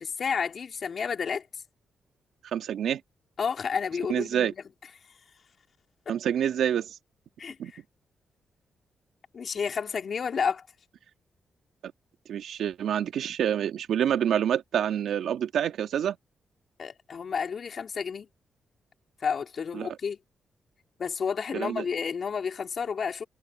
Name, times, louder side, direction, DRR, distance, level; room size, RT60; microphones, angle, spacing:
voice 1, 0.0-1.4 3.4-4.5 7.4-7.8 9.3-10.6 16.8-18.3 19.2-20.2 21.0-23.2, left 6 dB, 60° left, 3.0 m, -31 dB
voice 2, 2.5-3.0 4.1-4.5 6.1-7.0 7.6-7.7 12.3-16.2 19.7-20.0 21.5-21.9, right 9 dB, 80° right, 2.0 m, -27 dB
cardioid pair, 65°, 0 cm